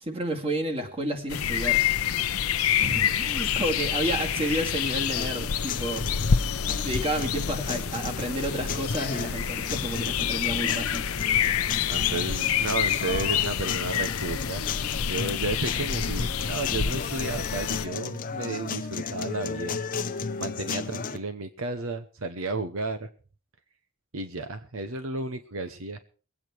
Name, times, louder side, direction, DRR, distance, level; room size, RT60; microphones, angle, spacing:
voice 1, 0.0-1.8 2.8-6.3 6.7-11.0, right 1 dB, 25° right, 2 dB, 2.4 m, -31 dB
sound 1, 1.3-17.9, left 8 dB, 80° left, 0.7 m, -27 dB
sound 2, 5.2-21.2, left 5 dB, 40° left, 0.8 m, -35 dB
voice 2, 11.9-14.6 15.1-19.8 20.4-23.1 24.1-26.0, right 3 dB, 65° right, 9 dB, 0.9 m, -33 dB
22.5 x 8.7 x 4.6 m, 0.39 s
head